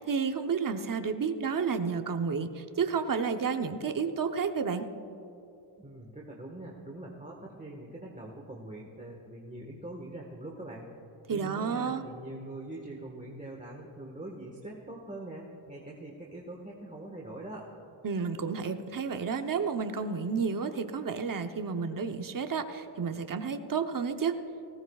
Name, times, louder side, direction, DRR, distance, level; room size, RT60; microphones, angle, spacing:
voice 1, 0.0-4.9 11.3-12.1 18.0-24.3, right 5 dB, 45° right, 7 dB, 0.9 m, -31 dB
voice 2, 5.8-10.8 11.3-17.6, right 1 dB, 15° right, -2 dB, 1.5 m, -43 dB
19.5 x 17.0 x 2.4 m, 2.9 s
wide cardioid pair, 90°, 47 cm